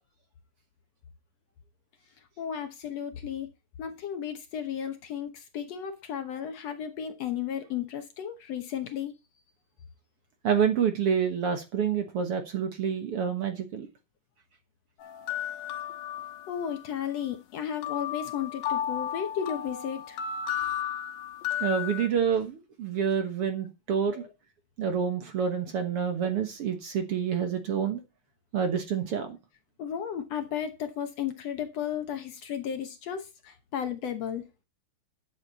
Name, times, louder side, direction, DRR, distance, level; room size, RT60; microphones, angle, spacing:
voice 1, 2.4-3.5 3.8-9.1 16.5-20.2 24.1-24.3 29.8-34.4, left 9 dB, 65° left, 2.0 m, -34 dB
voice 2, 10.4-13.9 21.6-24.2 24.8-28.0 28.5-29.4, right 7 dB, 55° right, 1.9 m, -28 dB
sound 1, 15.0-16.8 17.8-22.1, left 9 dB, 85° left, 2.8 m, -34 dB
11.5 x 8.4 x 4.1 m
omnidirectional pair, 3.7 m